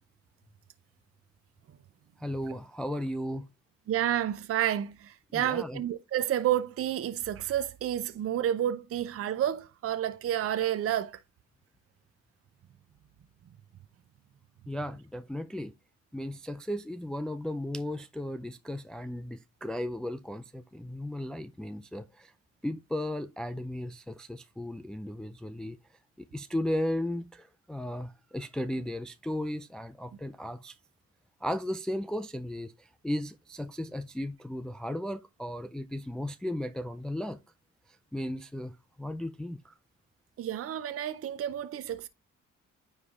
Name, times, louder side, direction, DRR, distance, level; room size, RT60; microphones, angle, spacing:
voice 1, 2.2-3.5 5.3-5.8 14.7-15.7 16.1-22.3 22.6-25.8 26.2-30.8 31.4-37.4 38.1-39.7, left 1 dB, ahead, 0.4 m, -35 dB
voice 2, 3.9-11.2 40.4-42.1, right 11 dB, 50° right, 0.6 m, -30 dB
9.5 x 3.3 x 3.6 m
cardioid pair, 90°, 30 cm